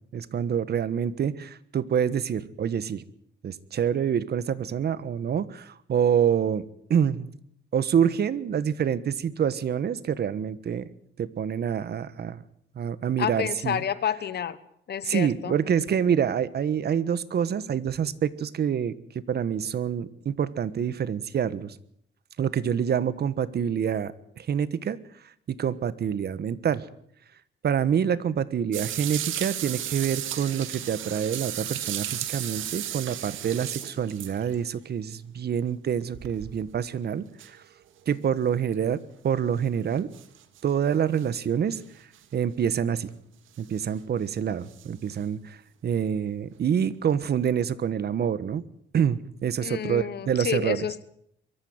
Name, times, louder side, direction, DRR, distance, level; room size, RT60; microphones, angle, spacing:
voice 1, 0.1-3.0 3.4-6.6 6.9-7.4 7.7-10.9 11.2-12.4 12.7-13.8 15.1-18.9 19.3-21.7 22.4-25.0 25.5-26.8 27.6-37.6 38.1-39.0 39.2-40.1 40.6-41.8 42.3-43.1 43.6-45.6 45.8-48.6 48.9-50.9, right 8 dB, 55° right, 16 dB, 1.4 m, -26 dB
voice 2, 13.2-14.6 14.9-15.6 49.6-51.0, left 9 dB, 55° left, 15 dB, 1.3 m, -29 dB
sound 1, 28.7-34.7 36.1-36.8 37.4-37.5 38.7-38.8 40.1-40.7 41.2-41.3 42.1-42.2 43.5-43.8 44.7-44.9 47.2-47.3, right 11 dB, 85° right, 2.1 m, -34 dB
23.0 x 13.5 x 9.6 m, 0.72 s
cardioid pair, 90°, 20 cm